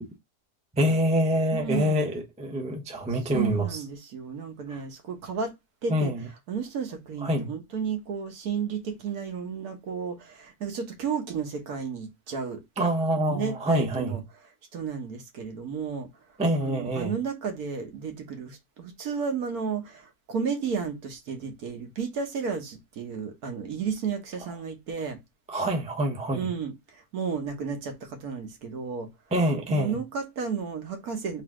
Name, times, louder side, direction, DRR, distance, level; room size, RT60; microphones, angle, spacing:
voice 1, 0.7-3.8 4.7-4.8 5.9-6.2 7.2-7.5 12.8-14.2 16.4-17.2 25.5-26.5 29.3-30.0, equal, 10° right, 0.4 m, -26 dB
voice 2, 1.5-2.0 3.3-5.5 5.8-6.1 6.5-12.6 13.3-14.2 14.7-16.1 16.6-25.2 26.3-29.1 29.7-31.4, right 6 dB, 60° right, 1.4 m, -32 dB
4.0 x 2.9 x 3.6 m
omnidirectional pair, 1.8 m